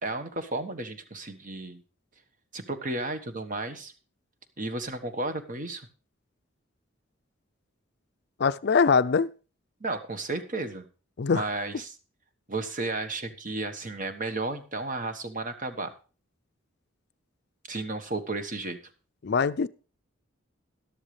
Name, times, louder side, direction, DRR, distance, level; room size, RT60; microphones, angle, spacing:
voice 1, 0.0-1.8 2.5-3.9 4.6-5.9 9.8-10.9 11.3-11.9 12.5-15.9 17.7-18.8, right 2 dB, 40° right, 1.3 m, -33 dB
voice 2, 8.4-9.3 11.2-11.4 19.2-19.7, left 5 dB, 55° left, 0.5 m, -22 dB
13.0 x 12.0 x 3.3 m
head